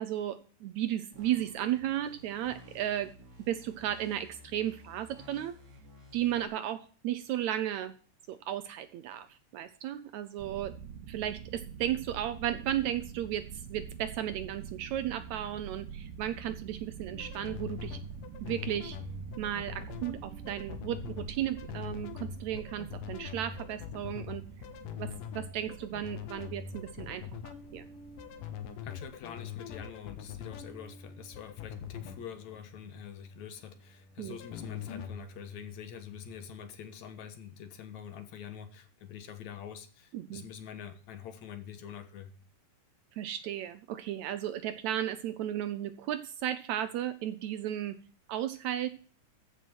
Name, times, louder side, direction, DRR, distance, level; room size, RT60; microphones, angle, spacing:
voice 1, 0.0-3.1 3.5-5.6 6.1-7.9 8.3-10.7 11.1-18.0 18.4-19.0 19.4-24.4 25.0-27.9 34.2-34.4 40.1-40.4 43.1-48.0 48.3-48.9, right 11 dB, 75° right, 1.8 m, -34 dB
sound 1, 1.1-6.5, left 1 dB, 45° right, 3.7 m, -54 dB
sound 2, 10.4-28.6, right 8 dB, 90° right, 2.6 m, -46 dB
sound 3, 17.1-36.6, left 7 dB, 85° left, 2.8 m, -44 dB
voice 2, 28.8-42.3, left 8 dB, 65° left, 2.3 m, -45 dB
14.5 x 6.0 x 6.0 m
omnidirectional pair, 3.8 m